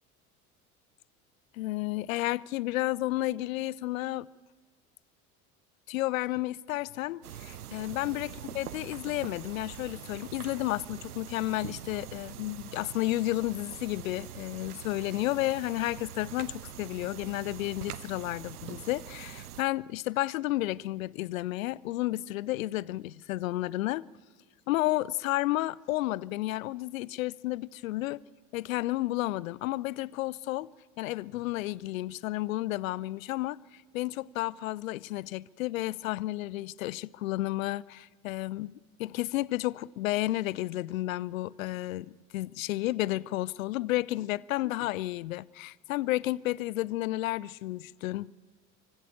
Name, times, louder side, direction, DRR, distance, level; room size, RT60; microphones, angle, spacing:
voice 1, 1.5-4.3 5.9-24.1 24.7-28.2 28.5-30.7 31.0-33.6 33.9-48.3, left 17 dB, 60° left, 0.6 m, -32 dB
sound 1, 7.2-19.6, right 10 dB, 80° right, 0.6 m, -44 dB
24.5 x 24.5 x 6.9 m
figure-of-eight pair, 65°, 45 cm